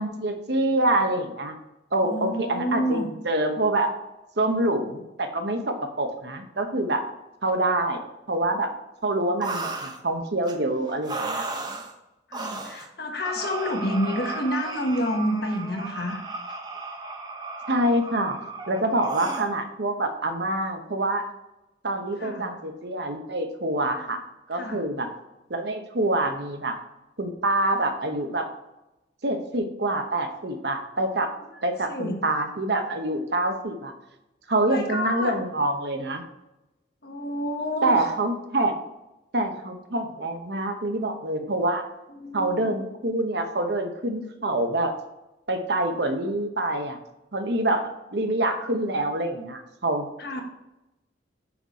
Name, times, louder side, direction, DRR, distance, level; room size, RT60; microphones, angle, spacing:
voice 1, 0.0-1.6 1.9-3.9 4.4-7.0 7.4-8.0 8.3-8.7 9.0-11.5 17.7-18.4 18.7-21.2 21.8-24.2 24.5-25.1 25.5-26.8 27.2-28.5 29.2-31.3 31.6-33.9 34.5-36.2 37.8-38.8 39.3-41.8 42.3-44.9 45.5-47.0 47.3-47.8 48.1-50.1, right 1 dB, 60° right, 6 dB, 1.0 m, -26 dB
voice 2, 2.0-3.1 12.3-16.2 22.2-22.5 24.5-24.8 31.5-31.6 31.9-32.3 34.5-35.4 37.0-38.1 42.1-42.8 50.2-50.4, equal, 55° left, 3 dB, 1.2 m, -29 dB
sound 1, 9.4-10.0 10.4-10.6 11.0-11.9 12.3-12.9 13.2-19.5, right 3 dB, 20° right, 0.7 m, -34 dB
5.9 x 5.9 x 4.1 m, 0.95 s
head